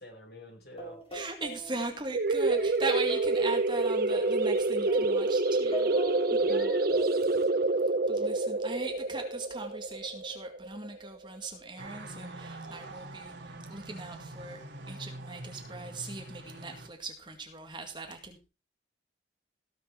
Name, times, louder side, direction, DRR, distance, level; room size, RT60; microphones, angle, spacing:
voice 1, 0.0-1.0 6.4-7.5, left 1 dB, 60° left, 3 dB, 4.7 m, -46 dB
sound 1, 0.8-2.1 2.5-8.5, left 1 dB, 30° left, 3.9 m, -44 dB
voice 2, 1.1-5.9 6.3-6.7 8.1-18.4, right 2 dB, 25° right, 4 dB, 2.0 m, -39 dB
sound 2, 2.1-11.5, right 2 dB, 50° right, 0.7 m, -27 dB
sound 3, 11.8-16.9, right 2 dB, 70° right, 2.3 m, -44 dB
17.5 x 6.9 x 4.6 m, 0.30 s
head